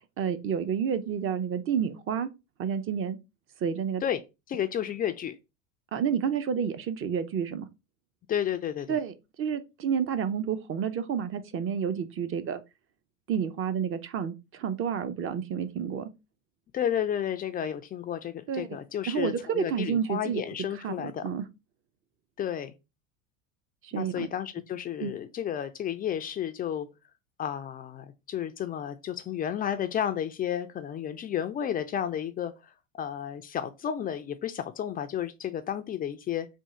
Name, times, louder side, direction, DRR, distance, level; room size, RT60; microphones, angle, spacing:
voice 1, 0.0-2.3 2.6-3.2 3.6-4.0 5.9-7.7 8.9-12.6 13.3-16.1 18.5-18.7 19.1-20.4 20.8-21.4 23.8-24.3 25.0-25.2, right 7 dB, 30° right, 0.6 m, -30 dB
voice 2, 4.5-5.4 8.3-9.0 16.7-21.2 22.4-22.7 24.0-26.9 27.4-36.5, left 9 dB, 25° left, 0.3 m, -32 dB
3.6 x 2.5 x 4.2 m
hypercardioid pair, 95°, 40 cm